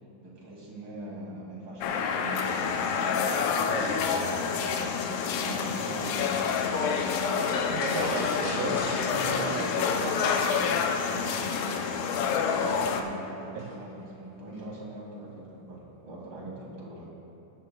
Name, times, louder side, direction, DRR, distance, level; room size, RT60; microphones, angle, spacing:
voice 1, 0.2-3.3 4.1-5.0 5.3-6.3 8.3-9.9 11.2-11.4 12.4-17.1, right 1 dB, 40° right, -4 dB, 3.2 m, -41 dB
sound 1, 1.8-13.0, left 6 dB, 90° left, 2.3 m, -28 dB
voice 2, 3.7-4.1 7.4-10.4 13.5-13.8, right 7 dB, 85° right, 3 dB, 2.1 m, -36 dB
sound 2, 5.3-10.3 10.6-11.0 11.4-12.4 13.6-14.0 14.5-14.7, left 1 dB, 35° left, 1.1 m, -44 dB
22.5 x 11.5 x 2.4 m, 2.7 s
omnidirectional pair, 3.5 m